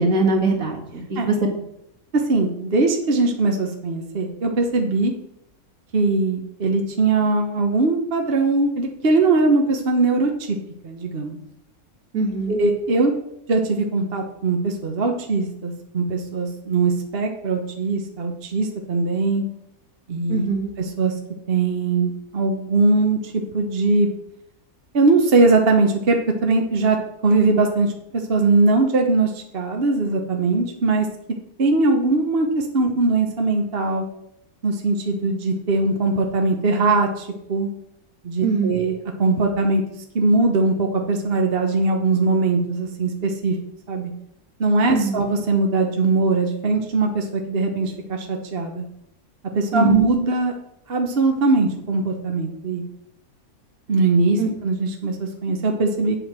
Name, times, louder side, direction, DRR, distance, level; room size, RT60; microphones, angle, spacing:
voice 1, 0.0-1.4 12.1-12.6 20.3-20.7 38.4-38.8 44.9-45.2 49.7-50.0 54.4-54.5, right 3 dB, 65° right, 1 dB, 2.3 m, -22 dB
voice 2, 2.1-5.1 5.9-10.6 10.8-11.4 12.5-13.1 13.5-19.4 20.1-20.5 21.0-21.1 21.5-24.1 24.9-26.2 26.4-27.0 27.2-27.9 28.3-31.1 31.6-34.0 34.6-37.7 38.2-38.9 39.2-39.8 40.1-43.6 43.9-44.1 44.6-48.8 49.5-50.5 50.9-52.8 53.9-56.2, right 3 dB, 45° right, 3 dB, 1.2 m, -20 dB
8.7 x 8.0 x 6.0 m, 0.79 s
omnidirectional pair, 1.5 m